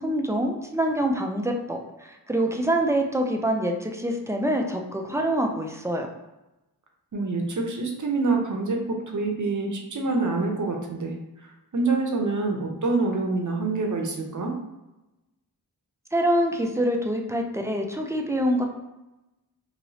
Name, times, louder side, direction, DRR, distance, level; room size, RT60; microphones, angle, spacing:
voice 1, 0.0-6.1 16.1-18.7, right 1 dB, 10° right, 2 dB, 0.4 m, -25 dB
voice 2, 7.1-11.1 11.7-14.5, right 3 dB, 50° right, 2 dB, 0.7 m, -26 dB
3.0 x 2.9 x 2.7 m, 0.99 s
wide cardioid pair, 55°, 40 cm